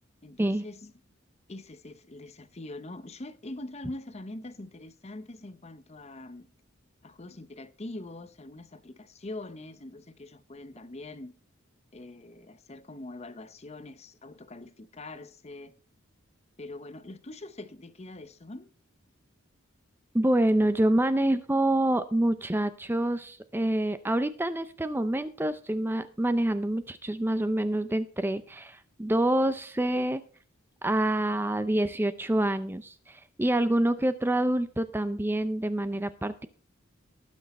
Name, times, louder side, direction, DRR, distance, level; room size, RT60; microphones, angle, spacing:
voice 1, 0.2-0.9 1.5-6.5 7.0-11.3 11.9-15.7 16.6-18.7, left 2 dB, 30° left, 0.8 m, -43 dB
voice 2, 20.1-30.2 30.8-36.5, right 1 dB, 10° right, 0.5 m, -27 dB
19.0 x 6.3 x 4.2 m
head